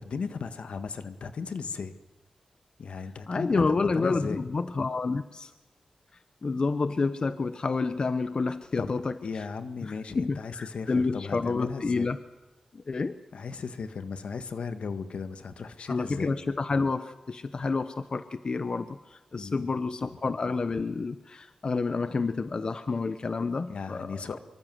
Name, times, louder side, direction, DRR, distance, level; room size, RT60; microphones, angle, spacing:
voice 1, 0.0-1.9 2.8-4.4 8.8-12.1 13.3-16.3 19.3-19.8 23.7-24.4, left 5 dB, 75° left, 10 dB, 1.8 m, -36 dB
voice 2, 3.3-5.5 6.4-9.1 9.8-12.2 12.7-13.2 15.9-24.4, left 4 dB, 45° left, 11 dB, 1.0 m, -29 dB
25.0 x 24.0 x 7.8 m, 1.1 s
wide cardioid pair, 115°, 2 cm